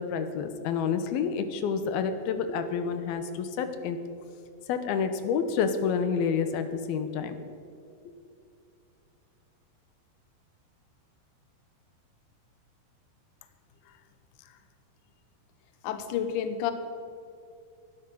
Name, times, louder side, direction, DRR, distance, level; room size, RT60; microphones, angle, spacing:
voice 1, 0.0-4.0 4.7-7.4, left 6 dB, 80° left, 9 dB, 2.8 m, -29 dB
voice 2, 15.8-16.7, left 9 dB, 65° left, 9 dB, 2.2 m, -29 dB
18.5 x 12.0 x 5.4 m, 2.5 s
omnidirectional pair, 4.3 m